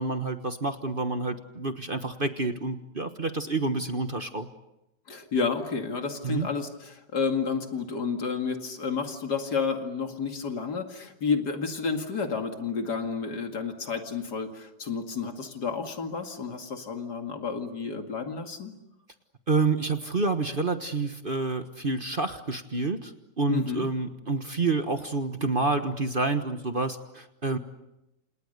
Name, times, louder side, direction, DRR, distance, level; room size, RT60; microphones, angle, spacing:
voice 1, 0.0-4.5 6.2-6.5 19.5-23.1 23.4-27.6, right 3 dB, 35° right, 8 dB, 1.4 m, -28 dB
voice 2, 5.1-18.7 23.5-23.8, left 5 dB, 65° left, 5 dB, 2.8 m, -31 dB
29.5 x 28.0 x 6.7 m, 0.91 s
omnidirectional pair, 1.9 m